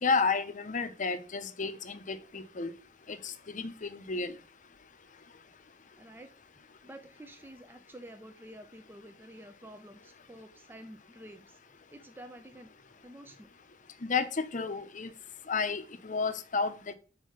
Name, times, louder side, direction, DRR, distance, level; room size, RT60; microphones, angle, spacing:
voice 1, 0.0-2.7 3.1-4.4 14.0-15.1 15.5-16.9, left 4 dB, 45° left, 0.8 m, -32 dB
voice 2, 6.0-6.3 6.8-11.6 11.9-12.7 13.0-13.5, right 1 dB, 10° right, 0.6 m, -49 dB
5.6 x 4.9 x 6.4 m
head